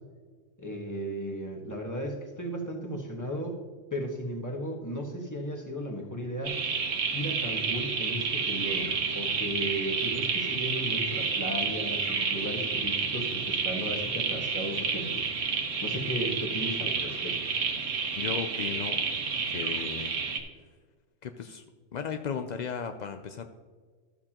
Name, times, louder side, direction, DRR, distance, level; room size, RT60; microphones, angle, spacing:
voice 1, 0.6-3.6 3.9-6.6 7.1-15.3 15.8-17.5, equal, 15° left, 0 dB, 1.3 m, -35 dB
sound 1, 6.4-20.4, right 5 dB, 90° right, 1.3 m, -30 dB
voice 2, 18.2-19.0 19.5-20.2 21.2-21.6 21.9-23.5, left 7 dB, 65° left, 7 dB, 0.4 m, -35 dB
13.0 x 7.1 x 2.9 m, 1.5 s
omnidirectional pair, 1.3 m